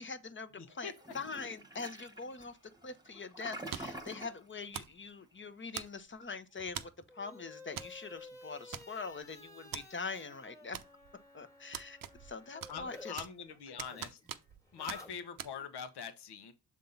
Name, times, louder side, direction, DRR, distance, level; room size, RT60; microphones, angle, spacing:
voice 1, 0.0-2.6 2.8-10.8 11.3-13.3, left 4 dB, 30° left, 0.9 m, -43 dB
Toilet flush, 1.0-4.4, right 1 dB, 10° right, 1.3 m, -47 dB
sound 1, 3.7-4.1 4.7-5.0 5.7-6.2 6.8-7.0 7.8-8.0 8.2-8.3 8.7-9.2 9.7-9.9 10.7-11.2 11.7-12.3 12.6-13.4 13.8-14.6 14.9-15.0 15.4-15.5, right 9 dB, 55° right, 0.7 m, -43 dB
sound 2, 6.5-13.1 13.4-15.7, left 2 dB, 10° left, 1.6 m, -53 dB
voice 2, 12.7-14.2 14.7-16.5, left 7 dB, 70° left, 1.2 m, -43 dB
7.0 x 3.7 x 3.9 m
cardioid pair, 85°, 42 cm